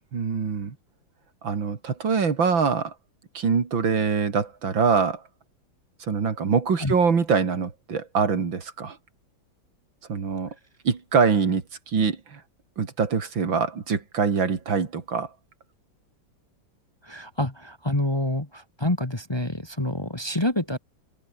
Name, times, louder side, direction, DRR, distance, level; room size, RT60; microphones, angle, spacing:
voice 1, 0.1-0.7 1.4-2.9 3.3-5.2 6.1-9.0 10.1-10.5 10.8-12.4 12.8-15.3, right 5 dB, 75° right, 3.3 m, -24 dB
voice 2, 17.0-20.8, left 1 dB, 15° left, 1.8 m, -27 dB
omnidirectional pair, 2.1 m